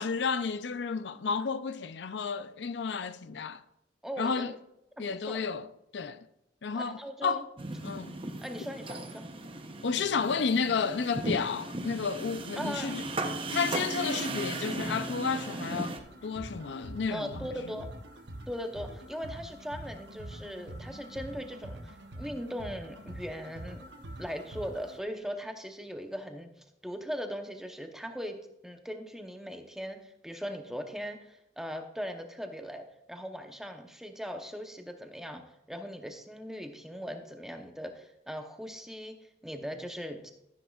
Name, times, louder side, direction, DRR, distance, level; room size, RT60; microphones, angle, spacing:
voice 1, 0.0-3.6 4.2-4.5 5.0-5.7 5.9-6.2 6.6-7.4 7.8-8.1 9.8-13.1 13.5-17.5, left 5 dB, 80° left, 0.5 m, -32 dB
voice 2, 4.0-4.5 5.0-5.4 6.7-7.4 8.4-9.2 12.6-12.9 17.1-17.9 18.5-23.8 24.2-26.5 26.8-35.4 35.7-40.3, equal, 5° right, 0.8 m, -39 dB
sound 1, 7.6-16.0, right 2 dB, 30° right, 0.8 m, -36 dB
sound 2, 16.0-25.0, right 1 dB, 80° right, 1.2 m, -45 dB
13.5 x 10.0 x 2.4 m
head